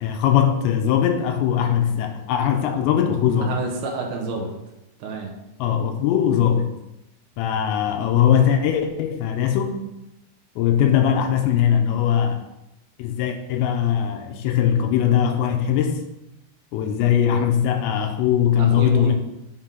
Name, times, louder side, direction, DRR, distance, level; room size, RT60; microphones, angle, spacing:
voice 1, 0.0-3.5 5.6-6.7 7.4-9.8 10.6-12.4 13.0-16.0 16.7-19.1, left 9 dB, 85° left, 5 dB, 2.8 m, -20 dB
voice 2, 3.4-4.5 5.0-5.3 18.6-19.1, right 3 dB, 85° right, 0 dB, 1.7 m, -28 dB
6.8 x 3.8 x 5.6 m, 0.90 s
omnidirectional pair, 5.0 m